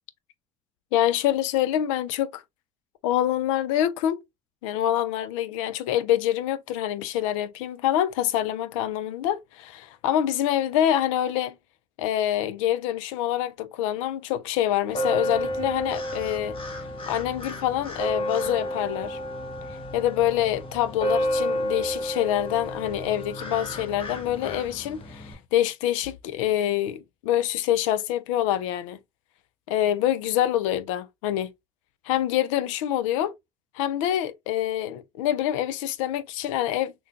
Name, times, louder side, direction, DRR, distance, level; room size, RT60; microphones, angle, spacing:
voice 1, 0.9-2.4 3.0-4.2 4.6-11.5 12.0-16.6 17.1-19.2 19.9-29.0 29.7-31.5 32.1-33.3 33.7-36.9, left 12 dB, 80° left, 0.5 m, -26 dB
sound 1, 14.9-25.3, equal, 35° left, 1.2 m, -31 dB
3.6 x 2.2 x 2.6 m
hypercardioid pair, 65°, 17 cm